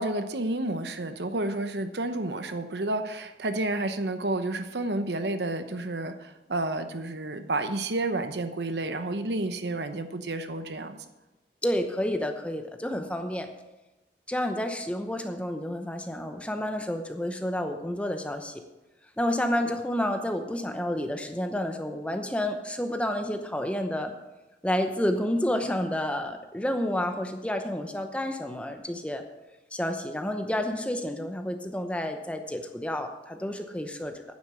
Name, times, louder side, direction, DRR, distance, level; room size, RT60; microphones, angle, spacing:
voice 1, 0.0-11.0, right 2 dB, 75° right, 8 dB, 0.9 m, -30 dB
voice 2, 11.6-13.5 14.3-18.6 19.2-24.1 24.6-29.2 29.7-34.2, left 1 dB, 5° left, 6 dB, 0.8 m, -30 dB
9.4 x 8.2 x 6.7 m, 1.0 s
head